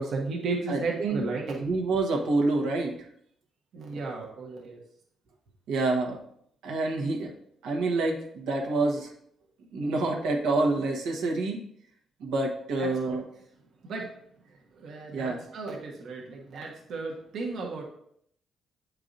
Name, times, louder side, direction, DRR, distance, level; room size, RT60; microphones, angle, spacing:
voice 1, 0.0-1.6 3.7-4.8 12.8-13.2 13.8-14.1 14.8-17.8, right 3 dB, 65° right, -2 dB, 1.2 m, -34 dB
voice 2, 0.7-1.2 1.6-2.9 5.7-6.2 6.6-7.3 7.6-9.1 9.7-11.6 12.2-13.2 15.1-15.4, right 3 dB, 90° right, 0 dB, 1.2 m, -27 dB
8.0 x 4.7 x 2.6 m, 0.68 s
cardioid pair, 90°, 0 cm